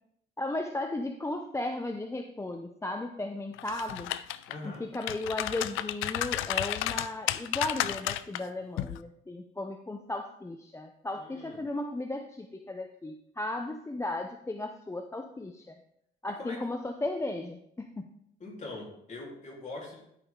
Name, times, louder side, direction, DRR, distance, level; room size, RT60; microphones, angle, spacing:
voice 1, 0.4-4.1 4.6-15.8 16.2-18.1, left 2 dB, 15° left, 5 dB, 0.6 m, -35 dB
sound 1, 3.6-4.5 4.9-8.4 8.8-9.0, left 13 dB, 85° left, 0.4 m, -32 dB
voice 2, 4.5-4.8 11.2-11.6 16.4-16.6 18.4-20.0, left 2 dB, 35° left, -3 dB, 3.5 m, -42 dB
11.5 x 5.1 x 3.7 m, 0.73 s
cardioid pair, 90°, 20 cm